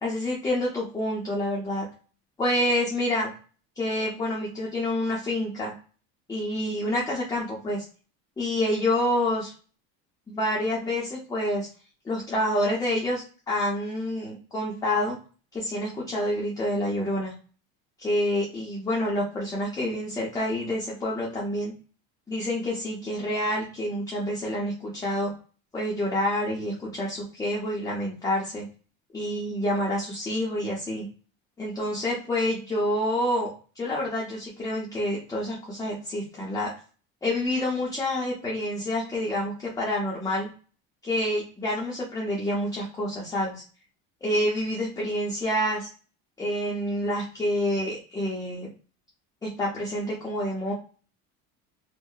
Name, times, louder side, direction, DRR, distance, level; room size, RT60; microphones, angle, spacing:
voice 1, 0.0-1.9 2.4-3.3 3.8-5.7 6.3-7.8 8.4-9.5 10.3-11.7 12.0-15.2 15.5-17.3 18.0-21.7 22.3-25.3 25.7-28.7 29.1-31.1 31.6-36.7 37.2-40.5 41.0-43.6 44.2-45.9 46.4-48.7 49.4-50.7, left 1 dB, 10° left, -5 dB, 0.6 m, -28 dB
2.7 x 2.1 x 2.2 m, 0.38 s
cardioid pair, 135°, 32 cm